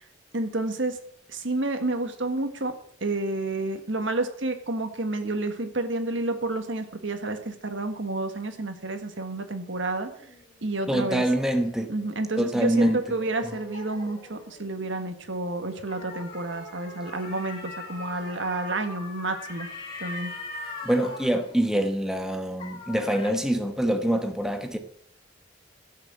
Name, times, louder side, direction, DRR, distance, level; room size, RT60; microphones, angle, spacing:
voice 1, 0.3-1.0 1.3-2.7 3.0-10.1 10.6-11.2 11.9-19.7 20.0-20.3, right 2 dB, 75° right, 7 dB, 1.7 m, -30 dB
sound 1, 10.1-14.9 15.7-22.3 22.6-23.3, left 2 dB, 30° left, 4.5 m, -42 dB
voice 2, 10.9-11.9 12.4-13.0 20.8-24.8, right 1 dB, 5° right, 6 dB, 1.1 m, -25 dB
16.0 x 6.6 x 7.5 m, 0.69 s
head